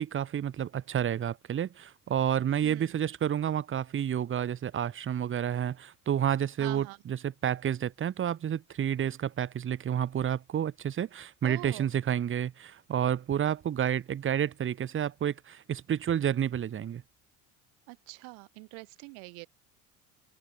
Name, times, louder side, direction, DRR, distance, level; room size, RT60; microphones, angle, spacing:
voice 1, 0.0-17.0, right 9 dB, 25° right, 1.1 m, -30 dB
voice 2, 2.6-3.0 6.6-7.0 11.4-11.9 17.9-19.5, right 40 dB or more, 55° right, 2.2 m, -44 dB
figure-of-eight pair, 65°, 47 cm